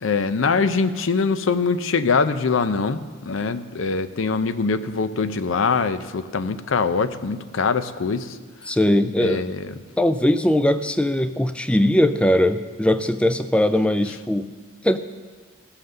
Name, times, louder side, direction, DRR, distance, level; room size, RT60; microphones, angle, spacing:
voice 1, 0.0-8.4 9.2-9.7, left 4 dB, 75° left, 12 dB, 0.6 m, -23 dB
voice 2, 8.7-9.4 10.0-14.5 14.8-15.0, left 1 dB, 5° left, 11 dB, 0.3 m, -20 dB
16.5 x 5.8 x 6.5 m, 1.5 s
head